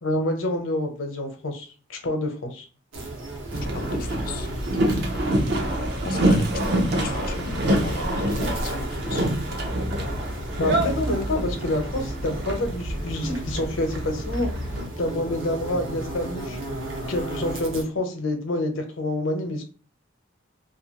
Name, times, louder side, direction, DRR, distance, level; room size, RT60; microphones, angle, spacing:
voice 1, 0.0-2.7 10.6-16.6 17.1-19.6, left 1 dB, 80° left, 4 dB, 0.7 m, -27 dB
sound 1, 2.9-17.8, right 1 dB, 75° right, 0.9 m, -36 dB
Boat Water vehicle, 3.5-14.9, right 1 dB, 55° right, 0.6 m, -26 dB
voice 2, 3.7-5.1 6.0-9.5 11.3-11.4, left 6 dB, 45° left, 10 dB, 0.3 m, -38 dB
2.6 x 2.5 x 2.8 m, 0.37 s
head